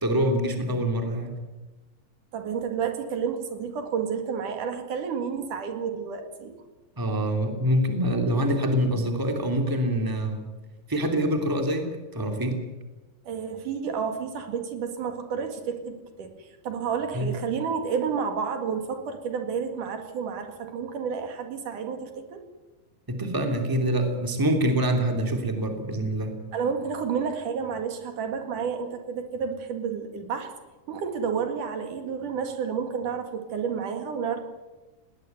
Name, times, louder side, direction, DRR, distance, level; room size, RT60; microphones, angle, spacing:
voice 1, 0.0-1.3 7.0-10.4 10.9-11.9 12.1-12.5 17.1-17.3 23.1-26.4, equal, 5° right, 4 dB, 2.5 m, -25 dB
voice 2, 2.3-6.6 13.3-22.4 26.5-30.5 30.9-34.4, right 6 dB, 70° right, 5 dB, 3.5 m, -30 dB
20.5 x 18.0 x 9.4 m, 1.2 s
omnidirectional pair, 3.8 m